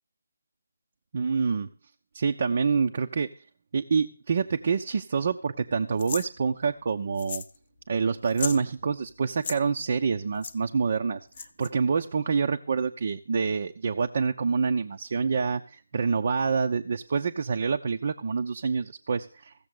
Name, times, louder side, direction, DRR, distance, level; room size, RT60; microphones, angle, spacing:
voice 1, 1.1-1.7 2.1-3.3 3.7-7.4 7.9-19.5, right 5 dB, 45° right, 5 dB, 0.7 m, -27 dB
sound 1, 6.0-6.3 7.2-7.6 7.8-7.9 8.2-8.6 9.3-9.6 10.4-10.5 11.3-11.7, left 6 dB, 40° left, 0.7 m, -35 dB
15.5 x 7.0 x 6.5 m, 0.39 s
figure-of-eight pair, 165°, 0 cm